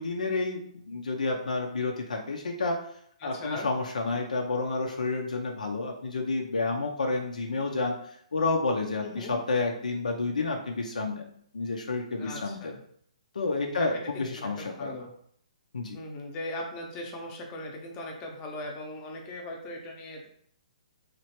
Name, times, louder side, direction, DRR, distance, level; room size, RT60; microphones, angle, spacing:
voice 1, 0.0-2.8 3.2-11.2 11.5-12.8 13.3-14.9 15.7-16.0, left 3 dB, 90° left, 2 dB, 0.5 m, -30 dB
voice 2, 3.2-3.7 9.0-9.4 12.2-12.8 13.7-13.9 14.1-15.1 15.9-20.3, left 2 dB, 25° left, 1 dB, 0.6 m, -39 dB
3.1 x 2.4 x 2.8 m, 0.64 s
hypercardioid pair, 150°, 4 cm